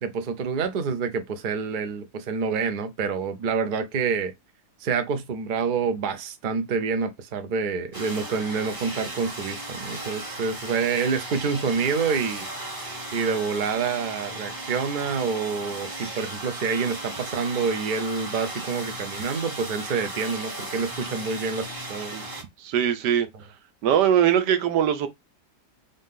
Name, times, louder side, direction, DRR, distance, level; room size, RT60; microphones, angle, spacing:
voice 1, 0.0-4.3 4.8-12.5 13.1-22.1, right 5 dB, 70° right, 0.4 m, -27 dB
sound 1, 7.9-22.4, right 2 dB, 20° right, 0.7 m, -36 dB
voice 2, 22.6-23.3 23.8-25.1, right 9 dB, 85° right, 1.3 m, -21 dB
3.8 x 2.7 x 3.6 m
omnidirectional pair, 1.8 m